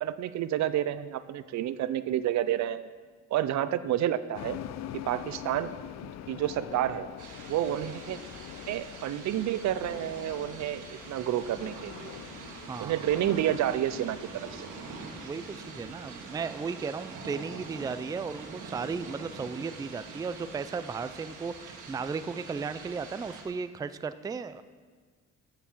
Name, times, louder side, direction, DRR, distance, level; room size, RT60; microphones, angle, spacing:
voice 1, 0.0-2.9 3.3-4.6 4.9-5.7 6.3-7.1 7.5-8.2 8.7-12.1 12.8-14.7, right 12 dB, 65° right, 15 dB, 0.5 m, -30 dB
sound 1, 4.3-15.9, left 11 dB, 60° left, 0.5 m, -44 dB
sound 2, 7.2-23.4, right 4 dB, 85° right, 1.6 m, -44 dB
voice 2, 12.6-13.0 15.2-24.6, right 5 dB, 15° right, 13 dB, 0.3 m, -35 dB
8.2 x 6.8 x 7.3 m, 1.5 s
cardioid pair, 90°, 30 cm